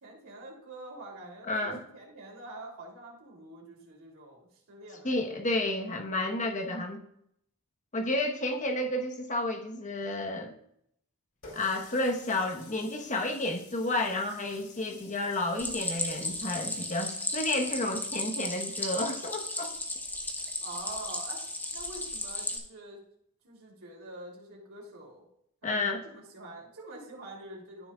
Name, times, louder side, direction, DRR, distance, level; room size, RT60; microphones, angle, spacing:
voice 1, 0.0-5.4 20.6-21.4 21.7-23.0 23.4-25.2 25.6-25.8 26.0-27.9, right 2 dB, 65° right, -2 dB, 3.1 m, -46 dB
voice 2, 1.5-1.8 5.0-7.0 7.9-10.5 11.5-19.7 25.6-26.1, left 2 dB, 35° left, 3 dB, 1.1 m, -31 dB
Water tap faucet, 11.4-17.2, left 3 dB, 60° left, 3.0 m, -52 dB
Stream, 15.6-22.6, left 2 dB, 10° left, 0.9 m, -35 dB
13.0 x 6.1 x 2.4 m, 0.72 s
head